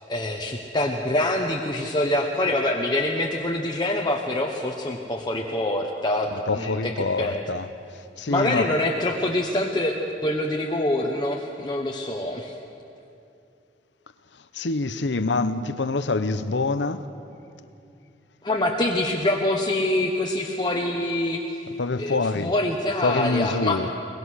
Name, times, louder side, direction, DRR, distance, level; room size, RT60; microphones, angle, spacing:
voice 1, 0.1-7.4 8.3-12.5 18.4-21.6 22.0-23.8, left 1 dB, 25° left, 1.2 m, -25 dB
voice 2, 6.3-7.7 8.2-8.7 14.5-17.1 21.7-22.5 23.0-23.9, left 3 dB, 85° left, 0.9 m, -26 dB
22.5 x 21.5 x 6.5 m
head